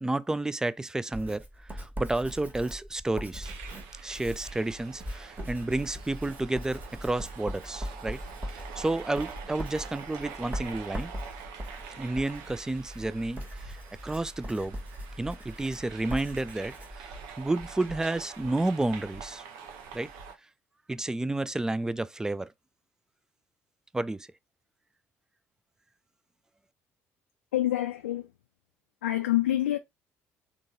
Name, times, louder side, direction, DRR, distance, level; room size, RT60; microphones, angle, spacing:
voice 1, 0.0-3.5 4.0-8.2 8.8-11.1 12.0-13.8 14.0-14.8 15.2-19.4 19.9-20.1 20.9-22.5 23.9-24.3, right 2 dB, 10° right, 0.3 m, -31 dB
Writing, 1.1-17.7, equal, 25° right, 1.5 m, -41 dB
sound 1, 3.4-20.3, right 5 dB, 65° right, 0.8 m, -45 dB
voice 2, 27.5-28.3 29.0-29.8, left 14 dB, 75° left, 0.3 m, -26 dB
3.8 x 3.5 x 2.5 m
figure-of-eight pair, 50°, 7 cm